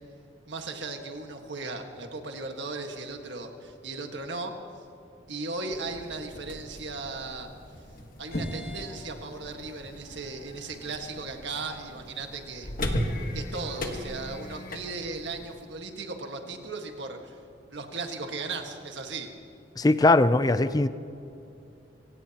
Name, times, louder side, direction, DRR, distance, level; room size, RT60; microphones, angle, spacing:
voice 1, 0.5-4.5 5.3-7.5 8.2-12.9 13.3-17.4 17.7-19.3, right 3 dB, 65° right, 4 dB, 1.6 m, -37 dB
sound 1, 5.7-15.7, equal, 50° left, 1.5 m, -37 dB
voice 2, 19.8-20.9, left 2 dB, 20° left, 13 dB, 0.4 m, -20 dB
25.5 x 17.0 x 2.9 m, 2.7 s
head